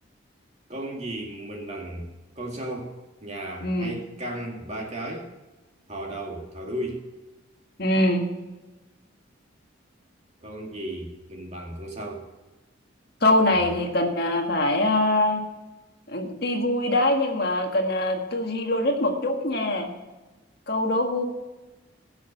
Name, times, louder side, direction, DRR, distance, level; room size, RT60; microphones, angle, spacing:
voice 1, 0.7-2.1 2.4-2.9 3.2-5.3 5.9-7.0 10.4-12.3, right 1 dB, 35° right, 0 dB, 2.3 m, -34 dB
voice 2, 3.6-4.0 7.8-8.2 13.2-15.4 16.1-19.9 20.7-21.2, left 1 dB, 50° left, 3 dB, 1.7 m, -23 dB
16.5 x 6.3 x 5.6 m, 1.1 s
head